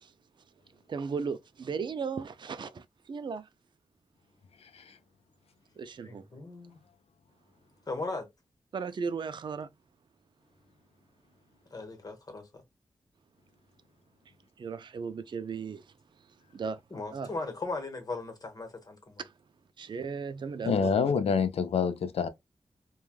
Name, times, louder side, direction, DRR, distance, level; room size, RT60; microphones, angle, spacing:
voice 1, 0.9-3.5 5.8-6.2 8.7-9.7 14.6-15.8 16.5-16.8 17.1-17.3 19.8-20.9, right 5 dB, 50° right, 0.3 m, -36 dB
voice 2, 4.6-5.0 20.7-22.3, left 6 dB, 80° left, 0.4 m, -27 dB
voice 3, 6.0-6.8 7.9-8.3 11.7-12.6 16.9-19.2, left 3 dB, 40° left, 1.0 m, -38 dB
3.2 x 2.2 x 2.3 m
wide cardioid pair, 100°, 10 cm